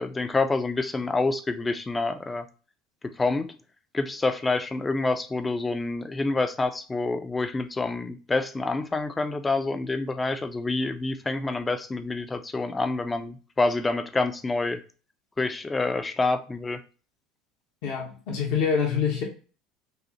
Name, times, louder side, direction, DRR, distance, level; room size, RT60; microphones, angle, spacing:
voice 1, 0.0-2.5 3.0-3.6 3.9-14.8 15.4-16.8, left 3 dB, 20° left, 0.5 m, -27 dB
voice 2, 17.8-19.2, left 6 dB, 70° left, 1.2 m, -26 dB
5.4 x 2.0 x 2.9 m
supercardioid pair, 100°, 0 cm